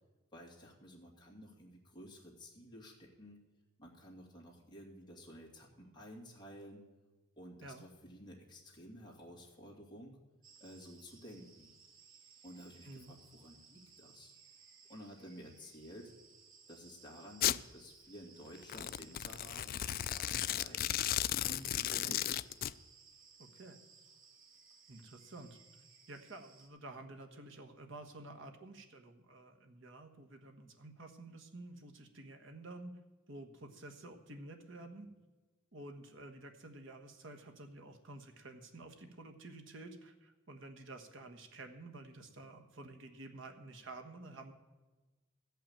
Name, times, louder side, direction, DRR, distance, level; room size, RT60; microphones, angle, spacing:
voice 1, 0.3-3.4 3.8-6.8 7.4-10.2 10.6-11.7 12.4-14.3 14.9-16.1 16.7-21.0 21.5-22.5, equal, 20° left, -3 dB, 2.5 m, -53 dB
sound 1, 10.4-26.7, right 5 dB, 85° right, 2.4 m, -61 dB
Domestic sounds home sounds, 17.4-17.6 18.6-22.7, left 12 dB, 45° left, 0.3 m, -35 dB
voice 2, 23.4-23.8 24.9-25.6 26.1-32.9 33.3-35.1 35.7-44.5, right 2 dB, 65° right, 5 dB, 1.4 m, -51 dB
14.0 x 5.8 x 8.8 m, 1.2 s
head